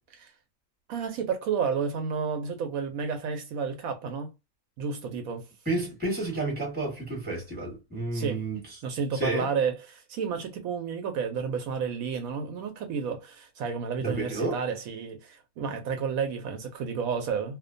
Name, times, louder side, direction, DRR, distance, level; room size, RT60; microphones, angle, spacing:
voice 1, 0.9-4.3 4.8-5.5 8.1-8.4 8.8-17.6, right 6 dB, 75° right, 1.0 m, -31 dB
voice 2, 5.7-8.6 9.1-9.5 14.0-14.6, right 2 dB, 5° right, 1.0 m, -30 dB
2.7 x 2.1 x 2.5 m
omnidirectional pair, 1.5 m